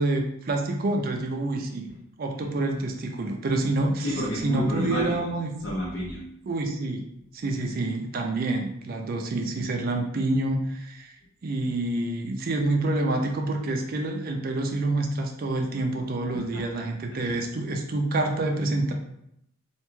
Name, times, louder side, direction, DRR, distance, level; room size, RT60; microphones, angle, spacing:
voice 1, 0.0-1.9 2.2-5.5 6.4-7.0 7.3-11.1 11.4-18.9, right 2 dB, 45° right, 3 dB, 0.4 m, -27 dB
voice 2, 4.0-5.3 5.6-6.2 16.5-16.6 17.1-17.4, equal, 60° left, -5 dB, 0.5 m, -30 dB
2.5 x 2.2 x 3.0 m, 0.76 s
head